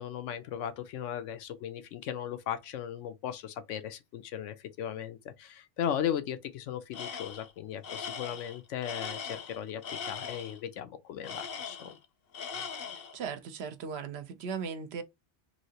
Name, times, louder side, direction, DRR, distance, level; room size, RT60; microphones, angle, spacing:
voice 1, 0.0-12.0, left 9 dB, 90° left, 1.0 m, -37 dB
Tools, 6.9-7.5 7.8-10.6 11.2-12.1 12.3-13.2, left 6 dB, 60° left, 0.8 m, -40 dB
voice 2, 13.0-15.0, right 6 dB, 65° right, 0.8 m, -38 dB
3.1 x 2.7 x 2.7 m
omnidirectional pair, 1.2 m